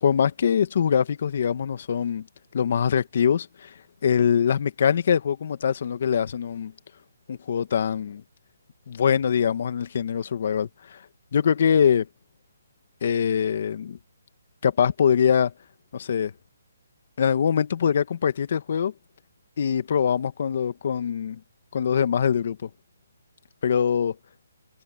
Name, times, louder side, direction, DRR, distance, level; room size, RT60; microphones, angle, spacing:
voice 1, 0.0-2.2 2.5-3.7 4.0-6.7 7.3-8.2 8.9-11.0 11.3-12.1 13.0-14.0 14.6-15.5 15.9-16.3 17.2-18.9 19.6-21.4 21.7-22.7 23.6-24.1, left 7 dB, 50° left, 1.7 m, -23 dB
hypercardioid pair, 160°, 0 cm